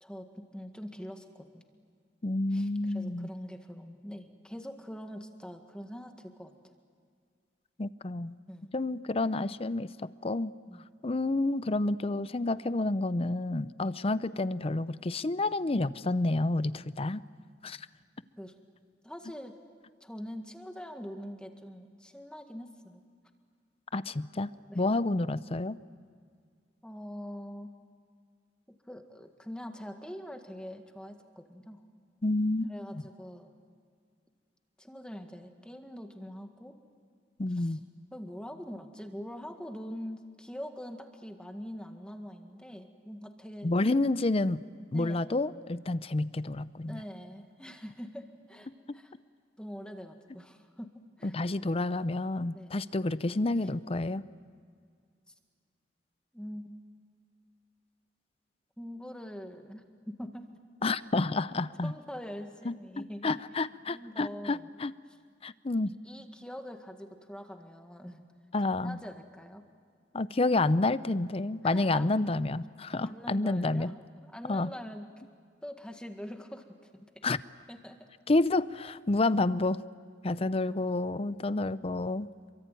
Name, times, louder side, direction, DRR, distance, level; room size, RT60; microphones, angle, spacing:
voice 1, 0.0-1.7 2.5-6.5 8.5-8.7 10.7-10.8 13.8-13.9 18.4-18.6 19.0-19.6 20.0-23.0 24.7-24.8 26.8-27.7 28.7-31.8 32.7-33.5 34.8-36.8 37.5-37.8 38.1-43.7 44.9-45.3 46.9-49.1 49.6-51.4 52.5-52.7 56.3-56.8 58.8-60.5 61.6-63.3 63.9-64.7 66.0-68.3 68.6-69.6 71.6-72.1 73.0-73.9 74.2-75.1 75.6-77.2 77.7-78.1 80.4-80.8, equal, 5° left, 5 dB, 1.8 m, -44 dB
voice 2, 2.2-3.3 7.8-8.4 8.7-9.9 10.2-10.5 11.0-17.2 17.6-17.9 23.9-24.5 24.8-25.8 32.2-32.7 37.4-37.8 43.6-44.6 44.9-47.0 51.2-54.2 60.8-61.9 62.6-62.8 63.2-64.9 65.4-65.9 68.5-69.0 70.1-73.9 74.4-74.7 77.2-77.4 78.3-79.8 80.2-82.3, left 2 dB, 35° left, 16 dB, 0.6 m, -29 dB
27.5 x 23.5 x 9.2 m, 2.1 s
head